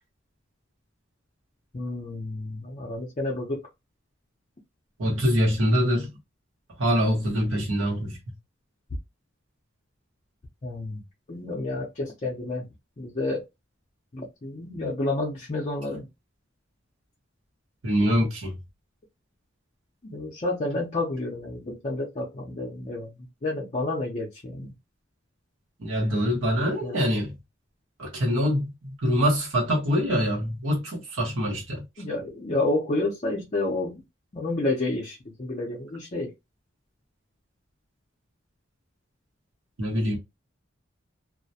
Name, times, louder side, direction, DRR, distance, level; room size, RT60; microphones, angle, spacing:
voice 1, 1.7-3.6 10.6-11.0 11.3-12.7 13.0-13.4 14.1-16.1 20.0-23.1 23.4-24.7 26.8-27.0 32.0-34.0 34.3-36.3, left 2 dB, 35° left, 0.5 m, -30 dB
voice 2, 5.0-6.1 6.8-8.2 17.8-18.5 25.8-27.3 28.0-31.8 39.8-40.2, equal, 90° right, 0.9 m, -24 dB
2.3 x 2.1 x 2.6 m
head